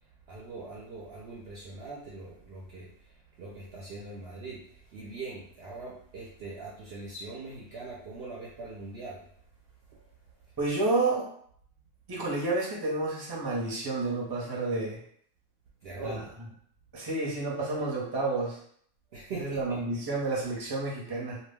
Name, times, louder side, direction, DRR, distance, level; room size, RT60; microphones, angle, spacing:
voice 1, 0.0-9.3 9.9-10.1 15.8-16.3 19.1-19.8, right 3 dB, 65° right, -4 dB, 0.7 m, -42 dB
voice 2, 10.6-11.3 12.1-15.0 16.0-16.2 16.9-18.6 19.4-21.4, right 2 dB, 25° right, -5 dB, 0.6 m, -30 dB
2.3 x 2.1 x 3.4 m, 0.65 s
omnidirectional pair, 1.4 m